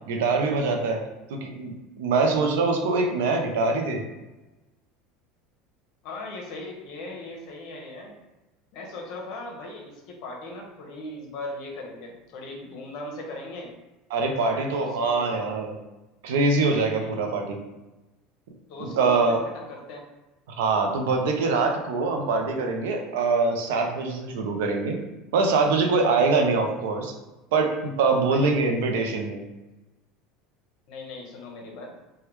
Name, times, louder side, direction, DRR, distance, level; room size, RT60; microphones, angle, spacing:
voice 1, 0.1-1.0 1.3-4.0 14.1-15.7 16.2-17.6 18.8-19.4 20.6-25.0 25.3-27.1 27.5-29.4, right 3 dB, 90° right, 3 dB, 0.5 m, -24 dB
voice 2, 6.0-8.1 8.7-13.7 14.4-15.5 16.9-17.2 18.7-20.0 28.3-28.5 30.9-31.9, left 2 dB, 60° left, 0 dB, 0.8 m, -38 dB
3.3 x 2.2 x 3.0 m, 1.1 s
supercardioid pair, 135°, 0 cm